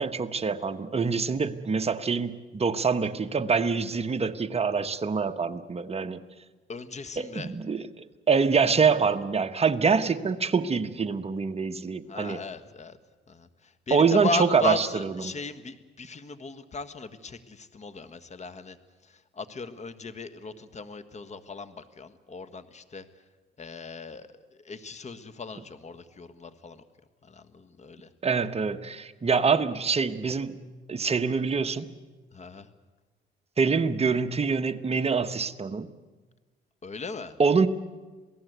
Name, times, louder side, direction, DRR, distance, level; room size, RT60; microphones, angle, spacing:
voice 1, 0.0-6.2 7.2-7.9 8.3-12.4 13.9-15.3 28.2-30.6 30.9-31.9 33.6-35.9 37.4-37.7, right 5 dB, 30° right, 8 dB, 1.2 m, -25 dB
voice 2, 6.7-7.5 12.1-13.0 13.3-13.5 13.9-18.8 19.4-23.0 23.6-24.3 24.6-26.8 27.2-28.1 32.3-32.7 36.8-37.3, left 3 dB, 35° left, 11 dB, 1.6 m, -36 dB
27.0 x 18.0 x 8.1 m, 1.3 s
cardioid pair, 90°, 20 cm